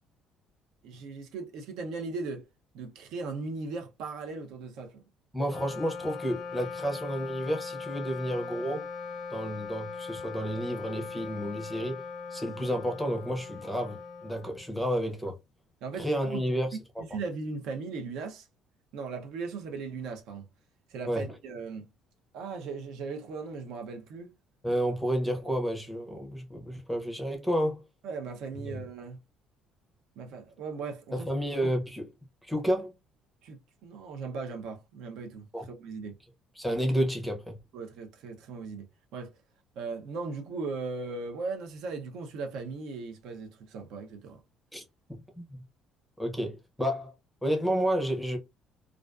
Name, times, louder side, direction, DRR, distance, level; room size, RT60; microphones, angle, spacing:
voice 1, 0.8-2.5 2.7-5.0 15.8-16.4 17.1-18.5 18.9-20.5 20.9-21.9 22.3-24.3 28.0-29.2 30.2-31.3 33.4-35.4 35.8-36.2 37.7-38.9 39.1-39.3 39.8-44.4, right 4 dB, 75° right, 0.5 m, -38 dB
voice 2, 5.3-8.9 9.3-12.0 12.3-15.4 16.0-16.8 21.1-21.3 24.6-27.8 28.5-28.8 31.1-32.1 32.4-32.9 35.5-35.7 36.6-37.6 44.7-44.8 45.1-45.6 46.2-47.1 47.4-48.4, equal, ahead, 0.5 m, -31 dB
Wind instrument woodwind instrument, 5.4-15.0, left 5 dB, 45° left, 0.4 m, -40 dB
2.4 x 2.3 x 2.3 m
cardioid pair, 155°, 0 cm